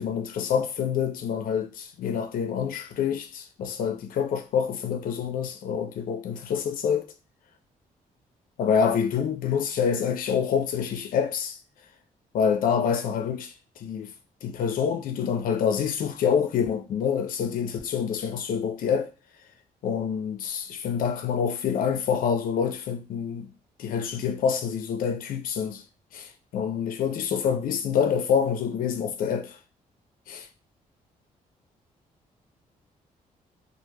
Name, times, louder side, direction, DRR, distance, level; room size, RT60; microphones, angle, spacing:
voice 1, 0.0-7.1 8.6-11.6 12.3-14.1 14.4-19.1 19.8-23.5 23.8-25.8 26.1-29.6 30.3-30.5, left 7 dB, 70° left, 0.4 m, -27 dB
2.0 x 2.0 x 3.2 m
cardioid pair, 75°, 15 cm